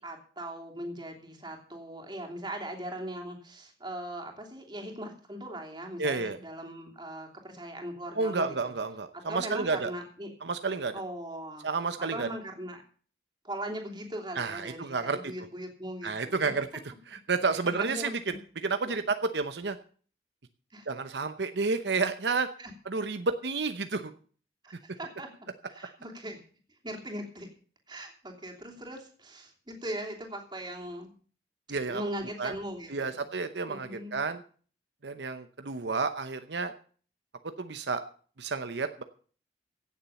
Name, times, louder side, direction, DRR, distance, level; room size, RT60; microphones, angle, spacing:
voice 1, 0.0-8.6 9.3-10.3 10.9-11.7 12.1-12.8 13.4-16.5 17.8-18.4 18.8-19.0 20.7-20.9 22.6-22.7 24.6-25.3 25.7-26.4 26.8-27.5 27.9-31.1 31.8-33.3 33.7-34.2, right 1 dB, 25° right, 2 dB, 3.0 m, -39 dB
voice 2, 6.0-6.4 8.1-9.9 10.4-10.9 11.6-12.3 14.4-15.3 16.0-16.7 17.1-18.4 18.6-19.8 20.9-22.5 22.8-24.1 31.7-32.0 32.4-32.5 32.9-34.4 35.0-36.7 37.6-38.0 38.4-39.0, right 4 dB, 80° right, 9 dB, 0.9 m, -30 dB
16.5 x 7.4 x 7.0 m, 0.43 s
head